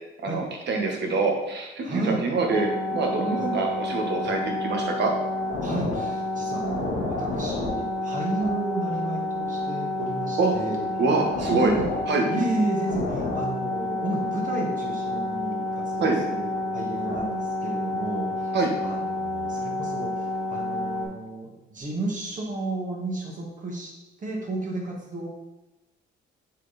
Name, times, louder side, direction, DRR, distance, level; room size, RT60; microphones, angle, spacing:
voice 1, 0.2-5.1 10.4-10.5 11.0-11.7 12.1-12.3 16.0-16.2 18.5-18.7, right 3 dB, 60° right, 2 dB, 1.4 m, -25 dB
voice 2, 1.8-2.2 3.4-3.5 4.2-4.4 5.6-10.8 11.4-11.9 12.3-18.5 18.8-23.9 24.2-25.3, right 2 dB, 40° right, -2 dB, 1.7 m, -32 dB
sound 1, 2.5-21.1, left 2 dB, 90° left, 1.8 m, -29 dB
6.2 x 4.1 x 4.2 m, 1.0 s
cardioid pair, 90°, 20 cm